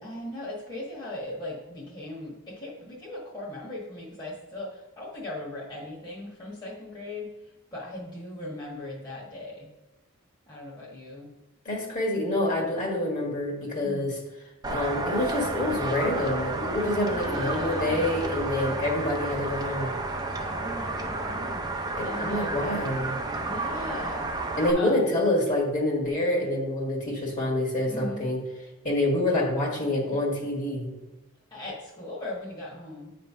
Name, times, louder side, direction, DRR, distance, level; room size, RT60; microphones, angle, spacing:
voice 1, 0.0-7.3 7.7-9.7 10.5-11.3 13.8-14.1 17.0-18.0 20.4-22.5 23.4-24.3 24.7-25.0 27.8-28.3 31.5-33.1, left 1 dB, 20° left, -7 dB, 1.4 m, -38 dB
voice 2, 11.7-14.2 14.7-19.9 22.0-23.2 24.6-28.4 28.8-30.9, left 1 dB, 40° left, -1 dB, 1.7 m, -27 dB
sound 1, 14.6-24.7, right 2 dB, 20° right, 0.7 m, -31 dB
9.0 x 3.3 x 5.5 m, 1.0 s
head